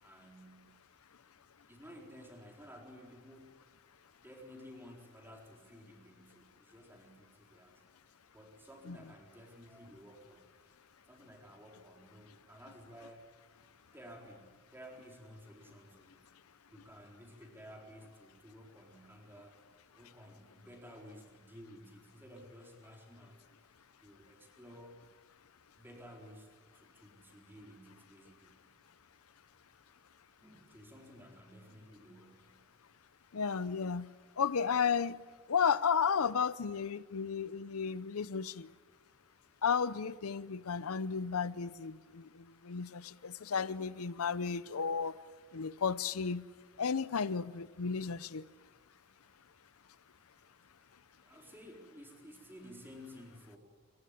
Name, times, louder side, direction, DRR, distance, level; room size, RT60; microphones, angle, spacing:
voice 1, 0.0-0.8 1.7-3.5 4.2-7.8 8.3-10.5 11.1-16.2 16.7-19.6 20.0-23.4 24.0-25.0 25.8-28.6 30.4-33.0 42.0-42.2 50.8-53.6, equal, 10° right, 4.1 m, -54 dB
voice 2, 33.3-34.1 34.4-35.2 35.5-38.7 39.6-45.2 45.5-46.4 46.8-48.4, left 6 dB, 85° left, 0.7 m, -33 dB
29.0 x 15.5 x 9.8 m
head